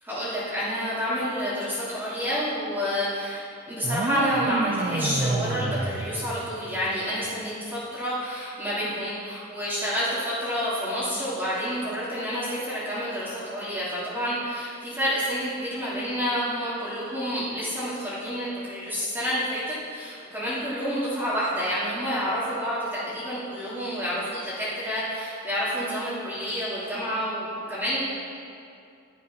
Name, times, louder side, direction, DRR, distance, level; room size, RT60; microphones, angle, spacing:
voice 1, 0.0-28.0, equal, 10° right, -12 dB, 2.9 m, -29 dB
sound 1, 3.8-7.0, right 2 dB, 35° right, 0.6 m, -29 dB
11.5 x 11.0 x 5.8 m, 2.5 s
head